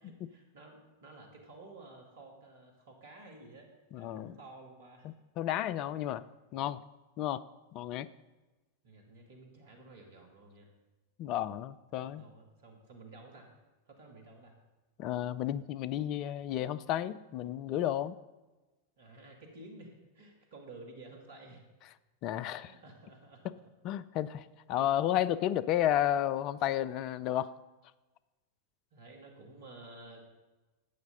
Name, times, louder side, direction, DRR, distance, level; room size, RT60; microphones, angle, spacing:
voice 1, 0.0-3.7 4.0-5.1 8.8-10.7 11.9-13.5 13.9-14.6 19.0-21.6 22.6-23.5 28.9-30.3, right 2 dB, 60° right, 1 dB, 2.2 m, -52 dB
voice 2, 3.9-4.4 5.0-6.2 6.5-6.8 7.2-7.4 7.7-8.1 11.2-12.2 15.0-18.2 22.2-22.7 23.8-27.5, left 12 dB, 40° left, 16 dB, 0.4 m, -32 dB
11.5 x 8.1 x 3.9 m, 1.2 s
figure-of-eight pair, 90°, 0 cm